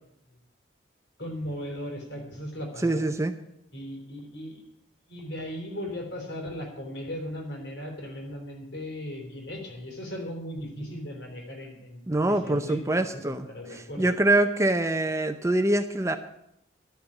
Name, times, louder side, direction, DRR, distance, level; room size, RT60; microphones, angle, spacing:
voice 1, 1.2-3.0 3.7-4.6 5.1-14.1, equal, 60° left, 1 dB, 3.9 m, -37 dB
voice 2, 2.8-3.3 12.1-16.2, right 2 dB, 15° right, 8 dB, 0.6 m, -25 dB
12.5 x 6.8 x 10.0 m, 0.78 s
head